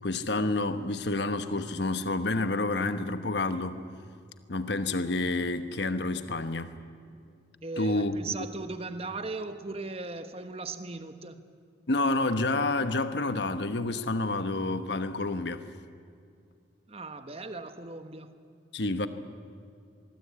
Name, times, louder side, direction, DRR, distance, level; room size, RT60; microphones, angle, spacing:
voice 1, 0.0-3.8 4.5-6.7 7.8-8.3 11.9-15.7 18.7-19.1, left 2 dB, 60° left, 1.1 m, -29 dB
voice 2, 7.6-11.5 16.9-18.3, right 3 dB, 30° right, 1.3 m, -38 dB
24.5 x 21.5 x 8.7 m
head